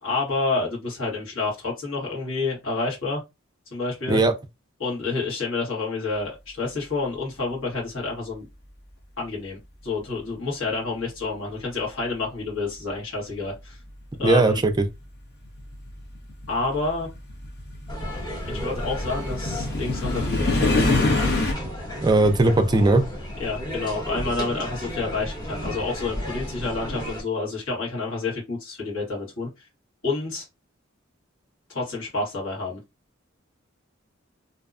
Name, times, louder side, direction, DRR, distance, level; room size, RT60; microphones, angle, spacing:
voice 1, 0.0-3.2 3.7-4.2 4.8-8.4 9.2-13.8 14.2-14.6 16.5-17.1 18.5-20.8 22.5-22.7 23.4-29.5 30.0-30.5 31.7-32.8, left 3 dB, 70° left, 1.3 m, -29 dB
voice 2, 14.2-14.8 22.0-23.0, right 2 dB, 20° right, 0.3 m, -18 dB
sound 1, 14.3-14.4 15.4-21.5, left 2 dB, 50° left, 0.8 m, -25 dB
sound 2, 17.9-27.2, equal, 20° left, 0.9 m, -33 dB
2.6 x 2.2 x 2.4 m
head